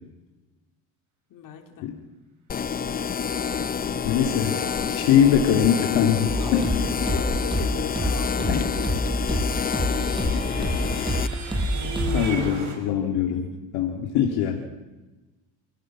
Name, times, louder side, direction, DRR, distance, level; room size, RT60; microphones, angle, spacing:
voice 1, 1.3-1.9 3.8-4.5 6.8-8.9 9.2-11.4 12.0-13.0 13.3-13.4, left 7 dB, 60° left, 3 dB, 3.7 m, -40 dB
sound 1, 2.5-11.3, left 7 dB, 25° left, 0.6 m, -28 dB
voice 2, 4.0-4.5 4.9-6.9 12.1-13.5 13.7-14.6, left 9 dB, 80° left, 2 dB, 2.6 m, -22 dB
sound 2, 6.3-12.3, equal, 15° right, 5.5 m, -27 dB
sound 3, 8.9-12.7, right 3 dB, 50° right, 6.8 m, -35 dB
28.5 x 16.0 x 6.2 m, 1.1 s
cardioid pair, 110°, 38 cm